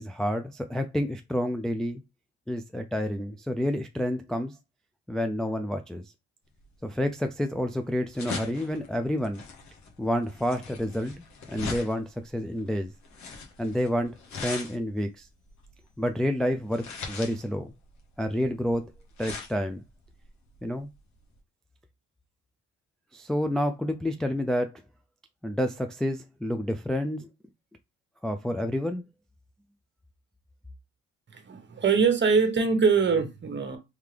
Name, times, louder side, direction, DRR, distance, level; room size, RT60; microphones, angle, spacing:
voice 1, 0.0-2.0 2.5-4.5 5.1-6.1 6.8-9.4 10.0-12.9 13.6-15.3 16.0-17.7 18.2-18.8 19.2-19.8 20.6-20.9 23.1-24.8 25.4-27.3 28.2-29.0, equal, ahead, 0.3 m, -29 dB
sound 1, 6.6-21.4, left 4 dB, 65° left, 1.4 m, -41 dB
voice 2, 31.3-33.8, right 5 dB, 35° right, 1.1 m, -23 dB
3.6 x 3.4 x 3.3 m
cardioid pair, 90°, 30 cm